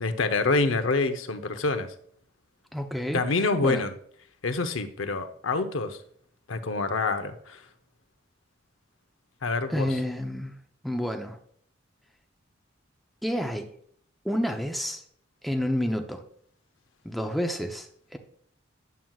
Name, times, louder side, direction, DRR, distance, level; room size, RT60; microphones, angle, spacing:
voice 1, 0.0-1.9 3.1-3.9 4.4-6.0 6.5-7.6 9.4-9.9, left 3 dB, 85° left, 8 dB, 0.8 m, -26 dB
voice 2, 2.7-3.9 9.7-10.5 10.8-11.4 13.2-13.7 14.2-15.0 15.4-16.2 17.0-18.2, equal, ahead, 4 dB, 0.6 m, -29 dB
9.3 x 7.4 x 2.4 m, 0.62 s
head